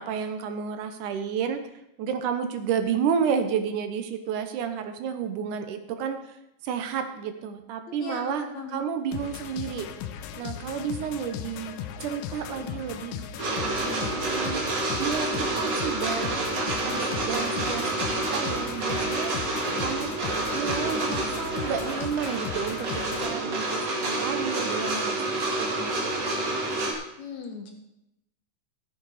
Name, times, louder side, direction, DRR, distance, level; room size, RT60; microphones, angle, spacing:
voice 1, 0.0-1.6 2.0-6.4 6.6-8.5 8.7-9.9 10.4-13.7 14.2-14.7 15.0-19.3 19.8-26.4, right 7 dB, 75° right, 8 dB, 2.3 m, -31 dB
voice 2, 7.9-8.8 13.8-14.3 27.2-27.7, left 5 dB, 65° left, 2 dB, 2.8 m, -38 dB
sound 1, 9.1-23.3, left 10 dB, 85° left, 2.3 m, -37 dB
sound 2, 13.4-26.9, right 2 dB, 40° right, 2.1 m, -28 dB
14.5 x 8.1 x 4.8 m, 0.84 s
omnidirectional pair, 3.8 m